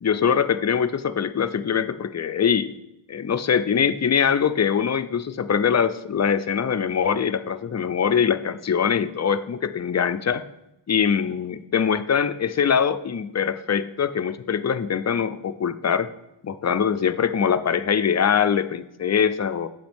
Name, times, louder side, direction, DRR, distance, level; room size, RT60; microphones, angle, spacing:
voice 1, 0.0-2.7 3.1-10.4 10.9-16.1 16.4-19.7, left 7 dB, 35° left, 12 dB, 0.5 m, -23 dB
8.6 x 7.8 x 3.5 m, 0.87 s
wide cardioid pair, 85°, 50 cm